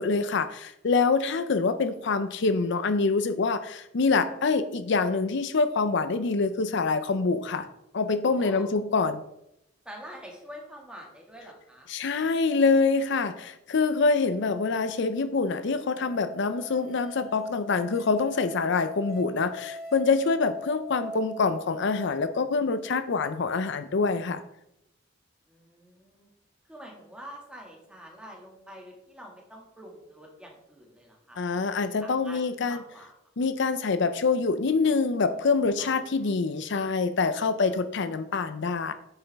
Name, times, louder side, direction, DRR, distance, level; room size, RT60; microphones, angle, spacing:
voice 1, 0.0-7.7 7.9-9.2 11.9-24.4 31.4-32.8 33.4-38.9, left 4 dB, 65° left, 11 dB, 0.5 m, -25 dB
voice 2, 9.9-11.9 25.5-26.3 26.7-31.4 32.0-33.1 35.8-36.4, equal, 5° right, -1 dB, 2.0 m, -46 dB
Musical instrument, 15.9-21.1, left 2 dB, 50° left, 1.8 m, -42 dB
9.5 x 7.0 x 3.5 m, 0.82 s
head